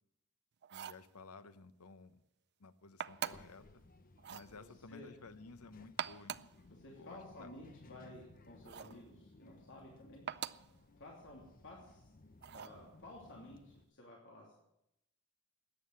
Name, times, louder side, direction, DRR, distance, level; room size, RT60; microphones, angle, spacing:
sound 1, 0.6-1.1 3.0-3.6 4.2-4.5 5.8-6.6 8.6-9.0 10.3-10.7 12.4-12.8, right 9 dB, 50° right, 0.5 m, -43 dB
voice 1, 0.7-2.2 2.6-3.6 4.3-6.4 6.7-7.5, left 4 dB, 90° left, 13 dB, 1.0 m, -55 dB
Child speech kid speaking, 3.1-13.8, left 2 dB, 40° left, 0.8 m, -61 dB
voice 2, 4.5-5.1 6.7-10.3 11.0-12.1 12.5-14.5, left 1 dB, 60° left, -2 dB, 3.0 m, -54 dB
13.5 x 9.4 x 9.4 m, 0.83 s
head